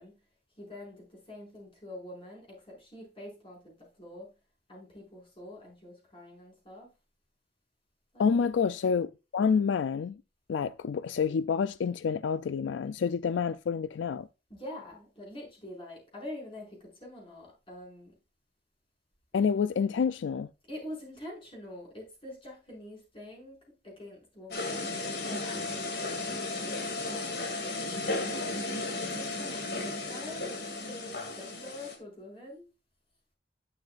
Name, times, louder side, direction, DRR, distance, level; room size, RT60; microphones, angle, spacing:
voice 1, 0.0-4.3 4.7-6.9 8.1-8.5 14.5-18.2 20.7-27.3 28.2-30.5 30.8-32.6, left 1 dB, 30° left, 5.5 m, -46 dB
voice 2, 8.2-10.2 10.5-14.3 19.3-20.5, left 6 dB, 85° left, 0.4 m, -28 dB
sound 1, 24.5-32.0, left 2 dB, 60° left, 2.5 m, -34 dB
11.0 x 8.9 x 2.5 m
head